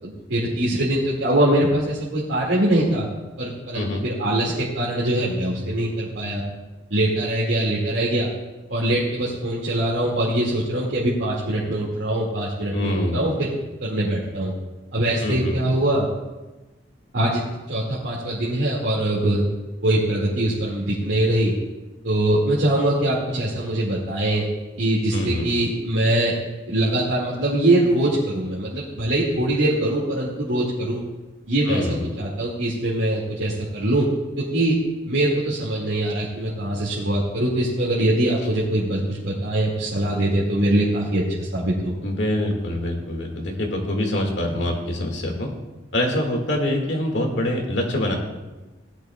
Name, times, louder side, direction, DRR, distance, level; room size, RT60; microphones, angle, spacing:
voice 1, 0.0-3.1 3.4-6.4 6.9-8.3 8.7-13.5 13.8-14.5 14.9-16.1 17.1-17.4 17.7-19.4 19.8-21.5 22.0-24.4 24.8-26.4 26.7-31.0 31.5-31.9 32.2-34.1 34.4-34.7 35.1-41.9, right 1 dB, 80° right, -7 dB, 2.2 m, -22 dB
voice 2, 3.7-4.0 12.7-13.3 15.2-15.6 25.1-25.5 31.7-32.2 42.0-45.5 45.9-48.2, left 1 dB, 70° left, 1 dB, 2.0 m, -25 dB
17.5 x 11.0 x 2.3 m, 1.1 s
head